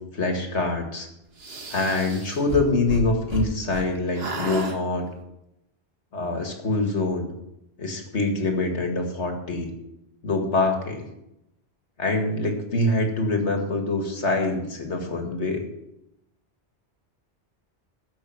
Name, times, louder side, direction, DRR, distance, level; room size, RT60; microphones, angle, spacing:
voice 1, 0.1-1.1 1.7-5.1 6.1-7.3 7.8-9.7 10.2-11.0 12.0-15.6, left 2 dB, 90° left, 3 dB, 2.4 m, -25 dB
sound 1, 1.4-3.9 4.1-4.8, right 3 dB, 65° right, 1.6 m, -32 dB
14.0 x 6.3 x 7.2 m, 0.84 s
omnidirectional pair, 1.1 m